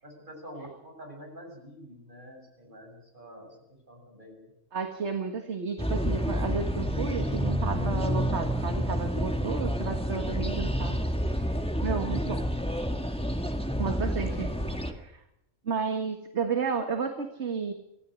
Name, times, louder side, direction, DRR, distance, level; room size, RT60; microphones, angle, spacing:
voice 1, 0.0-3.6 3.9-4.5 12.4-13.1 13.9-15.1, equal, 40° right, 1 dB, 7.1 m, -47 dB
voice 2, 4.7-11.0 11.3-11.6 11.8-12.4 13.8-14.5 14.8-15.2 15.7-17.7, right 5 dB, 60° right, 5 dB, 2.0 m, -32 dB
sound 1, 5.8-14.9, equal, 5° left, 1.8 m, -29 dB
26.0 x 16.0 x 6.4 m, 0.84 s
omnidirectional pair, 1.3 m